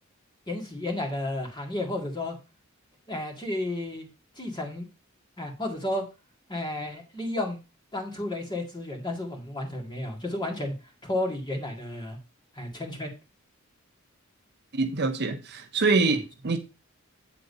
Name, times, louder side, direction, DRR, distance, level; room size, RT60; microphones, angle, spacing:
voice 1, 0.5-2.4 3.1-4.1 4.4-4.9 5.4-6.0 6.5-7.6 7.9-10.7 11.0-12.2 12.6-13.1 16.1-16.2, left 1 dB, 20° left, 2.0 m, -32 dB
voice 2, 14.7-16.6, right 3 dB, 50° right, 0.8 m, -25 dB
8.4 x 3.8 x 5.3 m
head